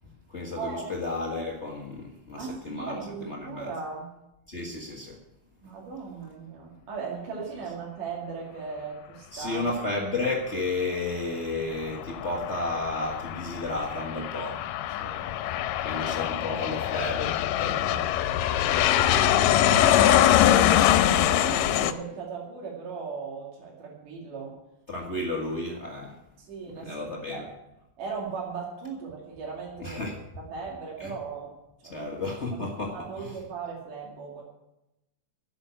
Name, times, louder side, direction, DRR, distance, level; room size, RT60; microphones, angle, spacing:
voice 1, 0.3-3.0 3.2-3.7 4.5-5.2 9.3-14.7 15.8-18.2 24.9-26.2 26.7-27.5 29.8-30.2 31.0-31.1 31.9-33.3, left 2 dB, 70° left, -1 dB, 0.6 m, -32 dB
voice 2, 2.4-4.1 5.6-9.7 15.0-15.3 18.7-24.5 26.5-27.5 28.0-30.0 30.4-31.5 31.8-32.2 32.5-32.6 33.0-34.4, right 5 dB, 70° right, -3 dB, 4.0 m, -37 dB
Aircraft, 11.7-21.9, left 12 dB, 90° left, 2.3 m, -23 dB
11.5 x 8.0 x 8.8 m, 0.90 s
omnidirectional pair, 3.9 m